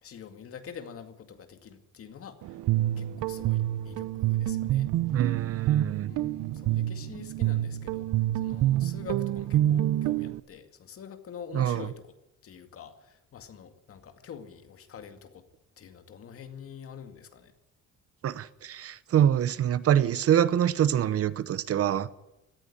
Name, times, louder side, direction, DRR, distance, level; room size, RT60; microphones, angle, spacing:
voice 1, 0.0-2.6 3.0-4.9 6.1-8.1 8.3-12.0 12.4-15.4 15.8-17.5, left 7 dB, 45° left, 2.2 m, -46 dB
Guitar, 2.4-10.4, right 13 dB, 80° right, 0.9 m, -27 dB
voice 2, 5.1-6.1 11.5-11.9 18.2-22.1, right 10 dB, 50° right, 0.9 m, -25 dB
18.0 x 14.5 x 10.0 m
cardioid pair, 160°, 31 cm